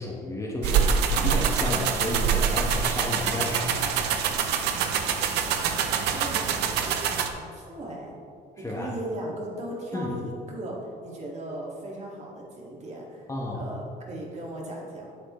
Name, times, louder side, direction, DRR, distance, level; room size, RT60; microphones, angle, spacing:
voice 1, 0.0-4.2 8.6-8.9 9.9-10.1 13.3-13.7, left 2 dB, 20° left, -3 dB, 1.3 m, -32 dB
sound 1, 0.6-7.3, right 7 dB, 80° right, 0.7 m, -25 dB
voice 2, 5.9-8.1 8.6-13.3 13.5-15.1, right 1 dB, 40° right, -2 dB, 2.1 m, -37 dB
10.0 x 7.7 x 3.2 m, 2.5 s
cardioid pair, 110°, 17 cm